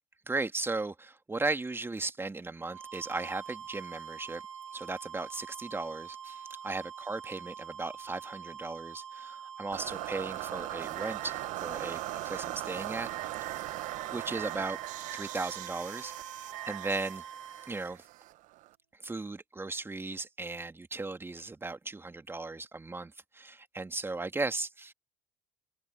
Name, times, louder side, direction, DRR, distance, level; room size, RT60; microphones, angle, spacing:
voice 1, 0.3-4.4 4.7-13.1 13.4-13.6 14.1-14.8 15.1-17.2 17.7-18.0 19.0-24.9, right 3 dB, 15° right, 2.7 m, -36 dB
sound 1, 2.6-17.9, right 7 dB, 85° right, 0.7 m, -45 dB
sound 2, 9.7-18.7, right 18 dB, 55° right, 1.6 m, -39 dB
open air
figure-of-eight pair, 65°, 16 cm